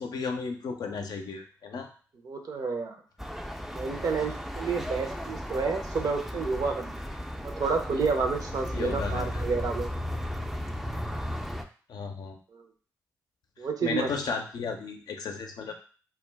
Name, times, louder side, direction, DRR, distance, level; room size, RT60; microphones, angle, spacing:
voice 1, 0.0-1.9 8.7-9.4 11.9-12.4 13.8-15.8, left 5 dB, 65° left, 4 dB, 0.5 m, -34 dB
voice 2, 2.2-3.0 3.7-7.0 7.4-9.9 12.5-12.6 13.6-14.1, right 4 dB, 55° right, 4 dB, 0.6 m, -30 dB
sound 1, 3.2-11.6, equal, ahead, 0.4 m, -35 dB
2.3 x 2.2 x 3.3 m, 0.41 s
supercardioid pair, 45°, 7 cm